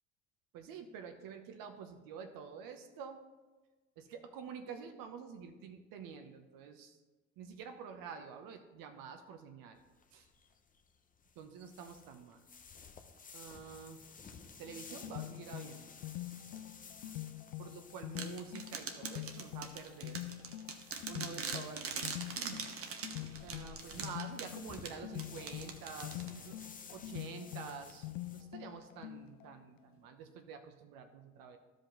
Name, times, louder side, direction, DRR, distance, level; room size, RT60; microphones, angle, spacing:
voice 1, 0.5-3.2 4.0-7.0 7.4-9.8 10.1-10.3 11.4-12.4 13.3-14.0 14.6-16.0 17.6-20.2 21.1-22.6 23.4-26.6 26.9-31.6, right 6 dB, 55° right, 6 dB, 1.0 m, -48 dB
sound 1, 9.8-28.4, left 5 dB, 20° left, 0.8 m, -55 dB
sound 2, 14.7-29.5, left 15 dB, 75° left, 0.6 m, -45 dB
sound 3, 18.2-26.6, right 5 dB, 35° right, 1.1 m, -43 dB
12.5 x 5.2 x 3.9 m, 1.2 s
hypercardioid pair, 85°, 39 cm